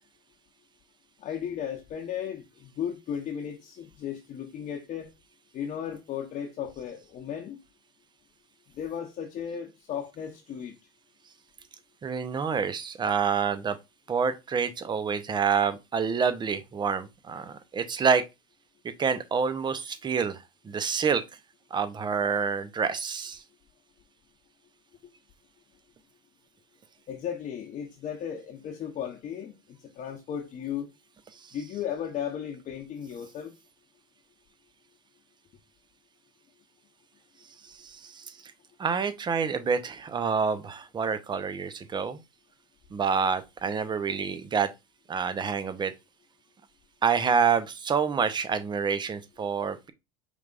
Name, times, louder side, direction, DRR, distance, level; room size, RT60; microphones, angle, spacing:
voice 1, 1.2-5.1 5.5-7.6 8.8-10.7 25.0-25.1 27.1-29.6 29.9-30.9 31.5-33.5, left 9 dB, 45° left, 0.8 m, -35 dB
voice 2, 12.0-13.8 14.1-18.2 19.0-21.2 21.7-23.4 37.6-38.4 38.8-42.2 42.9-44.7 45.1-45.9 47.0-49.9, right 6 dB, 25° right, 0.7 m, -27 dB
5.0 x 3.4 x 2.4 m
supercardioid pair, 100°, 17 cm